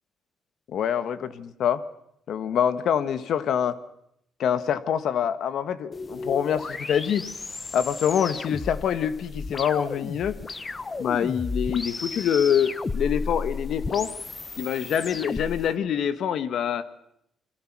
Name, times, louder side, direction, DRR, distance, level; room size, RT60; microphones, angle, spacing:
voice 1, 0.7-1.8 2.3-3.7 4.4-7.2 7.7-10.4 11.0-14.2 14.6-16.9, left 8 dB, 70° left, 1.5 m, -25 dB
sound 1, 5.9-15.7, left 3 dB, 30° left, 1.2 m, -34 dB
29.5 x 22.5 x 6.1 m
cardioid pair, 90°, 0 cm